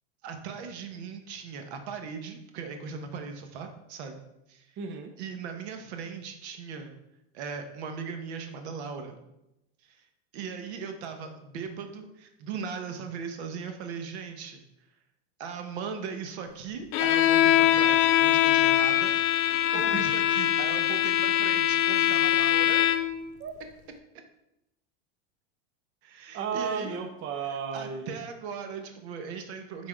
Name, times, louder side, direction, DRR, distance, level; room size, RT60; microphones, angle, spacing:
voice 1, 0.2-4.2 4.5-4.8 5.2-7.0 7.3-9.2 9.8-10.0 10.3-14.6 15.4-19.1 19.7-22.9 26.0-26.9 27.7-29.9, right 6 dB, 70° right, 6 dB, 1.2 m, -38 dB
voice 2, 4.8-5.2 19.9-20.1 23.4-23.5 26.3-28.2, right 6 dB, 35° right, 5 dB, 0.7 m, -33 dB
Bowed string instrument, 16.9-23.2, left 12 dB, 45° left, 0.7 m, -23 dB
6.0 x 4.1 x 5.0 m, 0.89 s
supercardioid pair, 130°, 34 cm